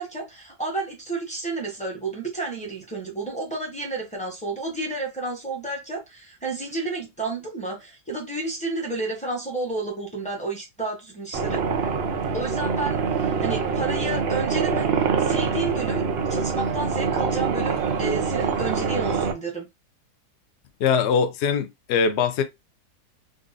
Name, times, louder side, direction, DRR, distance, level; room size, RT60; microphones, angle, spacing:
voice 1, 0.0-11.6 12.3-14.9 15.2-19.7, right 3 dB, 5° left, 0.6 m, -31 dB
sound 1, 11.3-19.3, right 5 dB, 85° right, 0.5 m, -25 dB
voice 2, 20.8-22.4, left 6 dB, 65° left, 0.6 m, -22 dB
3.9 x 2.5 x 2.4 m
omnidirectional pair, 1.7 m